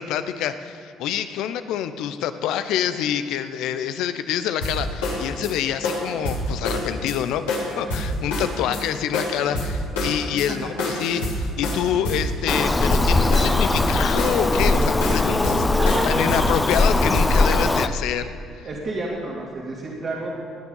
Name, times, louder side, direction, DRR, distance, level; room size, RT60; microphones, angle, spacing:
voice 1, 0.0-15.7 16.0-18.3 18.5-18.7, left 10 dB, 70° left, 11 dB, 0.7 m, -27 dB
sound 1, 4.6-5.5 5.8-7.2 7.5-8.8 9.1-10.5 10.8-17.2, left 1 dB, 85° left, 3.1 m, -27 dB
Bird vocalization bird call bird song, 12.5-17.9, left 2 dB, 20° left, 0.7 m, -20 dB
voice 2, 18.6-20.3, right 2 dB, 50° right, -4 dB, 2.7 m, -31 dB
19.0 x 9.5 x 5.6 m, 2.4 s
hypercardioid pair, 55°, 0 cm